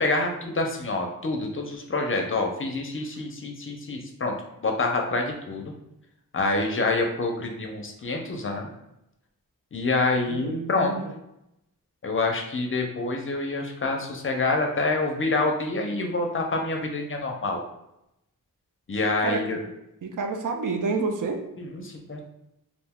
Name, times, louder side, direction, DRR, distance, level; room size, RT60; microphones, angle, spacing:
voice 1, 0.0-4.3 4.6-5.7 6.3-8.7 9.7-10.9 12.0-17.6 18.9-19.6 21.6-22.2, left 3 dB, 40° left, 2 dB, 0.4 m, -27 dB
voice 2, 10.3-11.1 19.2-19.4 20.0-21.4, right 4 dB, 65° right, 3 dB, 0.5 m, -29 dB
2.5 x 2.2 x 3.5 m, 0.86 s
wide cardioid pair, 100°, 33 cm